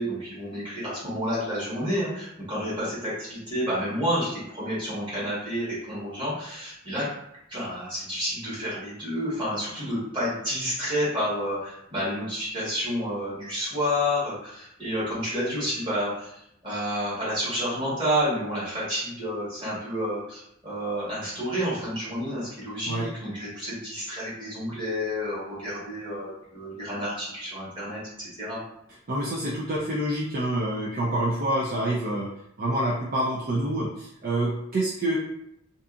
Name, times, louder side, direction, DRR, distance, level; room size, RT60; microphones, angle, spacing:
voice 1, 0.0-7.1 7.5-16.3 16.6-28.6, equal, 25° right, -9 dB, 1.3 m, -30 dB
voice 2, 29.1-32.3 32.6-35.2, right 1 dB, 45° right, -4 dB, 0.4 m, -27 dB
2.7 x 2.5 x 2.3 m, 0.77 s
head